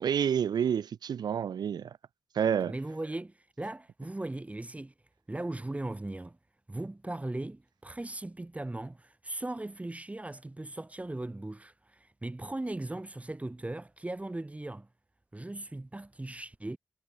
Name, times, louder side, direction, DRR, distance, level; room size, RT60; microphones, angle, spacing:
voice 1, 0.0-1.9 2.3-2.7, right 8 dB, 70° right, 0.5 m, -29 dB
voice 2, 2.6-4.9 5.3-6.4 6.7-14.9 15.3-16.8, right 2 dB, 20° right, 1.3 m, -38 dB
cardioid pair, 55°, 7 cm